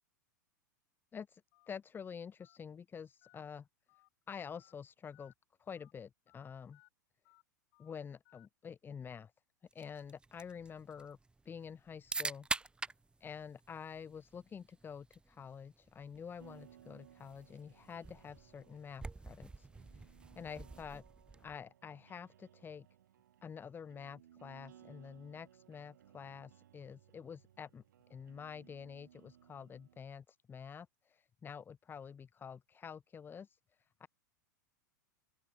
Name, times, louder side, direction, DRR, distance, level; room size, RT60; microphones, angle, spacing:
Telephone, 1.5-1.7 2.4-2.6 3.2-3.4 3.9-4.1 4.5-4.7 5.1-5.3 5.7-5.9 6.3-6.4 6.7-6.9 7.2-7.4 7.7-7.9 8.2-8.5, left 28 dB, 50° left, 3.1 m, -67 dB
voice 1, 1.7-3.7 4.3-5.3 5.6-6.8 7.8-9.3 9.7-11.2 11.5-12.5 13.2-19.7 19.9-21.0 21.4-22.9 23.4-27.8 28.1-33.6 34.0-34.1, left 7 dB, 20° left, 1.7 m, -48 dB
sound 1, 9.7-21.6, right 3 dB, 10° right, 1.9 m, -47 dB
sound 2, 16.4-30.1, right 11 dB, 70° right, 6.4 m, -63 dB
open air
figure-of-eight pair, 95°, 10 cm